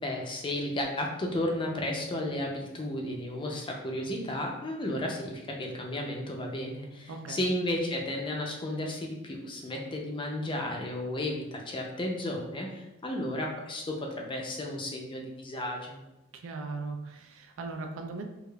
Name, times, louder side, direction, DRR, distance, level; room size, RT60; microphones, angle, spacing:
voice 1, 0.0-16.0, left 1 dB, 20° left, 1 dB, 0.5 m, -33 dB
voice 2, 7.1-7.4 16.3-18.2, right 3 dB, 65° right, 4 dB, 0.4 m, -38 dB
4.6 x 2.4 x 2.3 m, 0.94 s
head